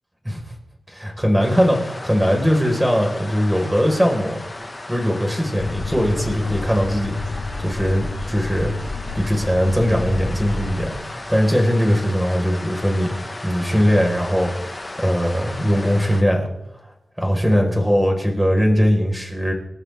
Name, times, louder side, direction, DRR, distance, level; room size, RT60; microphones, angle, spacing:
voice 1, 0.9-4.4 4.9-8.7 9.1-13.1 13.4-16.5 17.2-19.5, equal, 5° right, 1 dB, 4.9 m, -20 dB
sound 1, 1.4-16.2, left 2 dB, 20° left, 1.7 m, -35 dB
sound 2, 5.6-10.9, left 3 dB, 70° left, 4.0 m, -29 dB
29.0 x 13.0 x 3.7 m, 0.89 s
wide cardioid pair, 110°, 0 cm